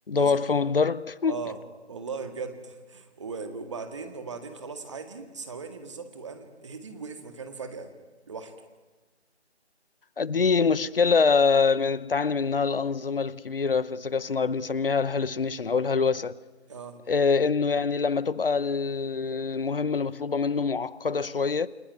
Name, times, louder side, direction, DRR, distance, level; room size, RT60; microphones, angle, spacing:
voice 1, 0.1-1.3 10.2-16.4 17.1-21.7, left 5 dB, 50° left, 0.8 m, -25 dB
voice 2, 1.3-1.6 1.9-7.9 8.3-8.5 16.7-17.0, right 5 dB, 25° right, 1.9 m, -38 dB
29.0 x 21.0 x 9.4 m
figure-of-eight pair, 165°, 35 cm